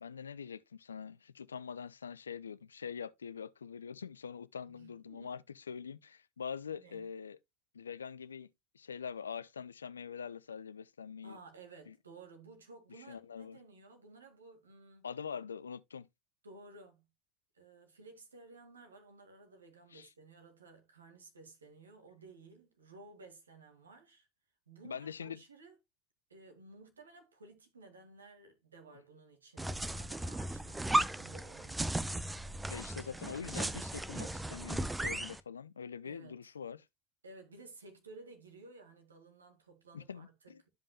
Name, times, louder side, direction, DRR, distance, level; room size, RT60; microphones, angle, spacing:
voice 1, 0.0-7.4 7.7-8.5 8.7-11.4 11.9-12.0 13.0-13.6 15.0-16.1 19.9-20.1 24.8-25.4 32.7-36.8 39.9-40.6, left 7 dB, 85° left, 0.4 m, -44 dB
voice 2, 4.7-5.4 6.7-7.1 11.2-15.1 16.4-17.0 17.5-24.3 24.7-25.8 26.3-31.9 32.9-33.1 36.0-36.4 37.2-40.5, right 3 dB, 85° right, 2.0 m, -55 dB
sound 1, 29.6-35.4, right 1 dB, 10° right, 0.6 m, -36 dB
13.0 x 5.3 x 2.3 m
hypercardioid pair, 75°, 0 cm